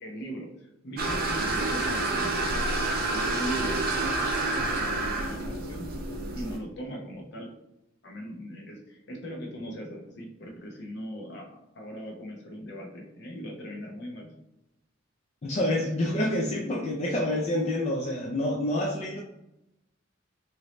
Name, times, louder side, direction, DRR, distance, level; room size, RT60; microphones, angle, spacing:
voice 1, 0.0-2.7 3.1-5.9 6.3-7.5 8.0-14.3, equal, 60° left, 0 dB, 0.7 m, -39 dB
sound 1, 1.0-6.6, right 2 dB, 50° right, 0.6 m, -28 dB
voice 2, 15.4-19.2, left 1 dB, 35° left, -1 dB, 0.4 m, -27 dB
3.0 x 2.7 x 3.0 m, 0.87 s
head